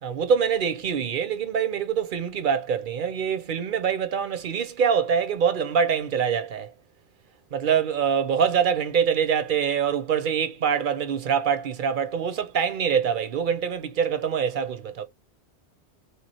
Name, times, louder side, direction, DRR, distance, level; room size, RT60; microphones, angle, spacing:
voice 1, 0.0-6.7 7.5-15.0, right 7 dB, 55° right, 0.8 m, -24 dB
3.4 x 3.0 x 4.3 m
omnidirectional pair, 1.2 m